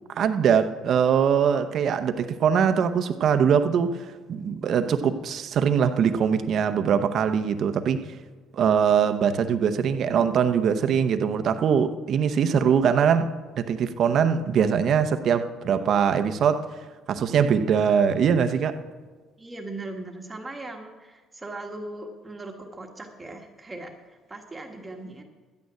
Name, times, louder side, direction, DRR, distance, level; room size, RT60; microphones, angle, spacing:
voice 1, 0.2-8.1 8.5-13.3 13.6-16.6 17.1-18.8, right 7 dB, 45° right, 0.8 m, -22 dB
voice 2, 19.4-25.2, right 2 dB, 10° right, 1.4 m, -39 dB
10.5 x 9.0 x 9.5 m
cardioid pair, 170°, 0 cm